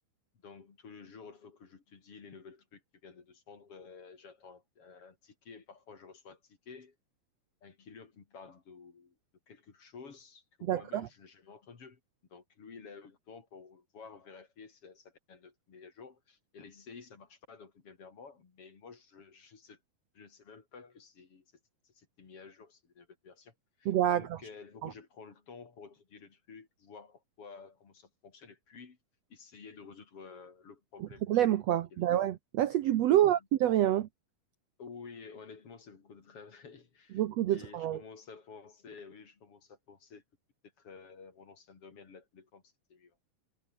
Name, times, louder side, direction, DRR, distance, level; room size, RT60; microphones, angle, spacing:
voice 1, 0.4-7.0 7.6-9.2 9.5-12.0 12.3-19.8 20.1-21.5 21.8-29.0 29.3-31.5 31.9-32.1 33.1-33.4 34.8-37.2 37.5-40.2 40.8-43.2, left 5 dB, 40° left, 3.5 m, -52 dB
voice 2, 10.6-11.1 23.8-24.4 24.8-24.9 31.0-34.1 37.1-38.0, right 12 dB, 80° right, 1.5 m, -27 dB
omnidirectional pair, 4.2 m